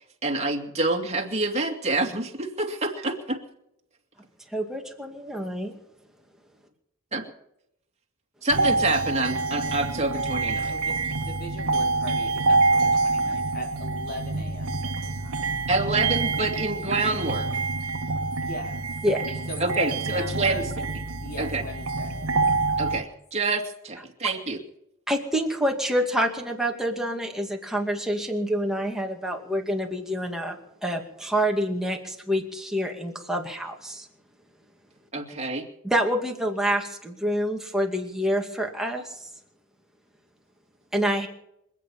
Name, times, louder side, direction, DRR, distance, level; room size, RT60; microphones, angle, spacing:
voice 1, 0.2-3.4 7.1-7.2 8.4-10.7 15.7-17.5 19.6-20.6 21.4-21.6 22.8-24.6 35.1-35.7, right 2 dB, 30° right, 2 dB, 2.5 m, -27 dB
voice 2, 4.5-5.8 19.0-19.4 25.1-30.6 30.8-34.1 35.8-39.3 40.9-41.3, equal, ahead, 1 dB, 2.3 m, -27 dB
sound 1, 8.5-23.0, right 3 dB, 65° right, 1.3 m, -26 dB
voice 3, 10.7-15.7 18.4-18.8 19.5-21.0 21.2-22.3, left 1 dB, 45° left, 2 dB, 3.6 m, -40 dB
27.0 x 9.1 x 5.7 m, 0.80 s
head